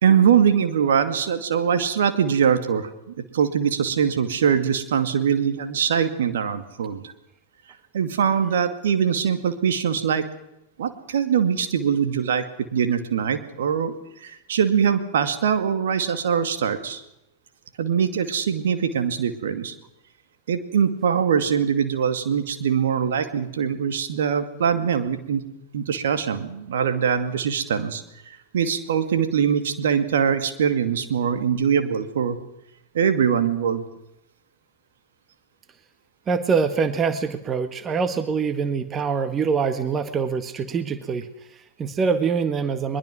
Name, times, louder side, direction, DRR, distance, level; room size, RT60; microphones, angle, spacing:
voice 1, 0.0-2.9 3.3-7.0 7.9-10.2 10.8-12.4 12.7-17.0 17.8-19.7 20.5-25.4 25.7-32.4 32.9-33.8, right 7 dB, 60° right, 8 dB, 2.3 m, -22 dB
voice 2, 36.3-43.0, right 5 dB, 25° right, 10 dB, 1.6 m, -24 dB
23.0 x 22.0 x 6.2 m, 0.82 s
figure-of-eight pair, 90°, 0 cm